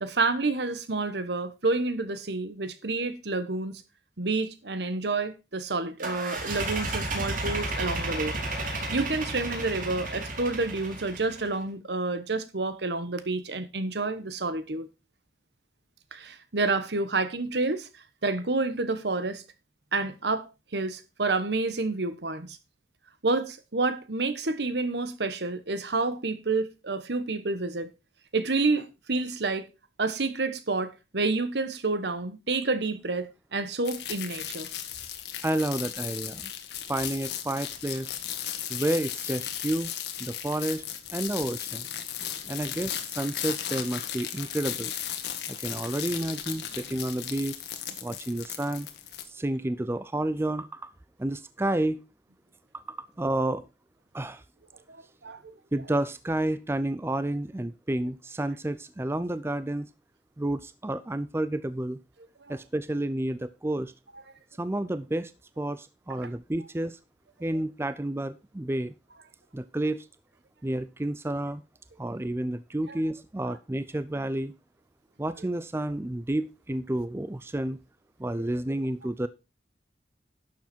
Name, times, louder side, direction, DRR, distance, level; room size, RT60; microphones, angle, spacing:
voice 1, 0.0-3.8 4.2-8.4 8.7-14.9 16.1-17.9 18.2-19.4 19.9-22.6 23.2-27.9 28.3-29.7 30.0-34.7 54.9-55.5 62.4-62.6 72.9-73.0 78.4-78.5, right 3 dB, 70° right, 1.2 m, -29 dB
sound 1, 6.0-11.5, right 2 dB, 50° right, 3.4 m, -32 dB
sound 2, 33.8-49.2, left 10 dB, 70° left, 1.6 m, -36 dB
voice 2, 35.4-36.5 36.9-38.1 38.7-39.9 40.2-40.8 41.1-41.9 42.5-44.9 45.5-47.6 48.0-48.9 49.3-50.9 51.2-52.0 52.7-53.7 54.1-54.4 55.7-59.9 60.4-62.0 62.5-63.9 64.6-65.3 65.6-67.0 67.4-68.9 69.5-70.1 70.6-71.6 72.0-74.5 75.2-77.8 78.2-79.3, right 1 dB, 15° right, 0.4 m, -30 dB
11.5 x 7.1 x 4.4 m
head